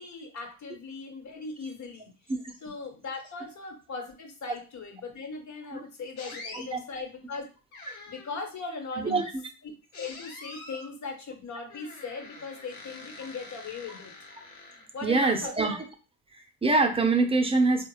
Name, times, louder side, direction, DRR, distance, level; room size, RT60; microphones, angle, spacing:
voice 1, 0.0-2.1 2.6-7.4 8.1-9.3 10.0-14.1 14.9-15.7, left 4 dB, 40° left, 3 dB, 1.5 m, -39 dB
sound 1, 6.2-6.7 7.7-8.5 9.9-10.9 11.7-15.1, left 3 dB, 80° left, 1.2 m, -45 dB
voice 2, 15.0-15.9 16.3-17.9, right 3 dB, 15° right, 4 dB, 0.9 m, -25 dB
3.7 x 2.5 x 3.1 m, 0.35 s
hypercardioid pair, 65°, 43 cm